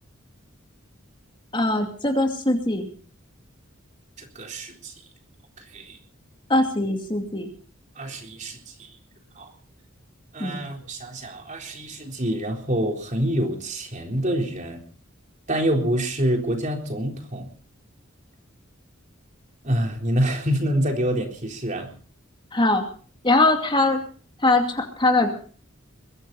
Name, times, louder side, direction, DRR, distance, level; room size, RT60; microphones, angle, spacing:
voice 1, 1.5-2.9 6.5-7.5 10.4-10.6 22.5-22.8 23.2-24.0 24.4-25.3, left 2 dB, 25° left, 4 dB, 2.5 m, -21 dB
voice 2, 4.2-4.9 5.6-6.0 8.0-8.9 9.4-9.5 10.3-14.8 15.5-17.5 19.6-21.9, right 1 dB, 35° right, 3 dB, 3.9 m, -26 dB
22.5 x 16.0 x 4.1 m, 0.42 s
head